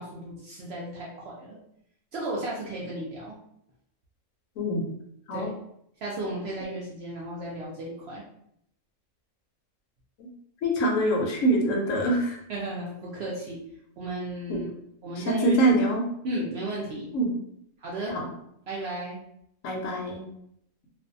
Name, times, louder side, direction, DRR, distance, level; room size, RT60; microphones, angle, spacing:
voice 1, 0.0-1.6 2.1-3.4 5.3-5.5 6.0-8.2 12.5-13.6 14.0-14.7 15.0-15.6 16.2-17.1 17.8-18.2 18.7-19.2, right 1 dB, 65° right, -4 dB, 0.6 m, -34 dB
voice 2, 10.6-12.4 14.5-14.6 15.2-16.0 17.1-17.3 18.1-18.2 19.6-20.2, right 1 dB, 70° left, 0 dB, 0.9 m, -24 dB
2.5 x 2.2 x 2.5 m, 0.74 s
omnidirectional pair, 1.5 m